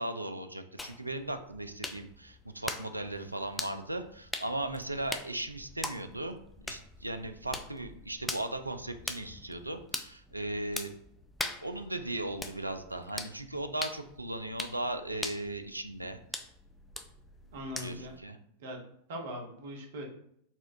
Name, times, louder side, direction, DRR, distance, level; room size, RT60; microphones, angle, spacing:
voice 1, 0.0-6.4 6.7-10.9 11.4-16.2 17.7-18.4, right 1 dB, 85° right, 8 dB, 0.3 m, -37 dB
sound 1, 0.8-18.2, left 2 dB, 10° left, 0.3 m, -43 dB
voice 2, 17.5-18.1 18.6-18.8 19.1-20.1, equal, 55° right, 1 dB, 0.8 m, -40 dB
4.2 x 2.3 x 2.6 m, 0.70 s
figure-of-eight pair, 90°, 0 cm